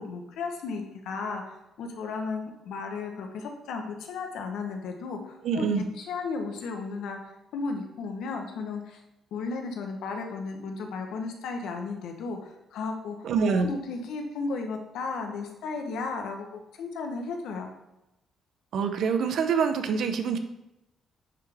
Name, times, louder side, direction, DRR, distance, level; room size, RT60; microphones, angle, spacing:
voice 1, 0.0-7.2 7.5-9.0 9.3-17.7, left 4 dB, 80° left, 4 dB, 1.0 m, -34 dB
voice 2, 5.4-5.9 13.2-13.7 18.7-20.4, right 6 dB, 70° right, 8 dB, 0.7 m, -25 dB
9.7 x 3.5 x 3.4 m, 0.91 s
cardioid pair, 90°, 0 cm